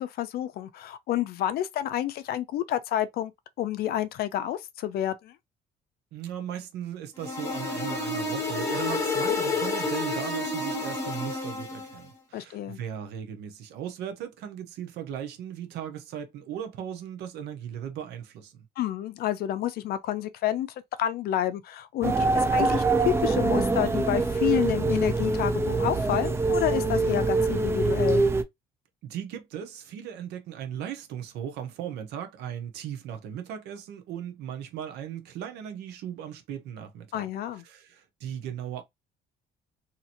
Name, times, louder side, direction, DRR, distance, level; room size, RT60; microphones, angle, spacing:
voice 1, 0.0-3.3 3.6-5.4 12.3-12.8 18.8-20.7 21.0-28.2 37.1-37.6, left 12 dB, 65° left, 0.5 m, -29 dB
voice 2, 6.1-18.7 29.0-37.3 37.6-38.8, right 9 dB, 80° right, 0.8 m, -37 dB
sound 1, 7.2-12.0, left 3 dB, 15° left, 1.1 m, -29 dB
sound 2, 22.0-28.4, right 3 dB, 15° right, 0.4 m, -24 dB
2.8 x 2.6 x 2.8 m
cardioid pair, 110°, 17 cm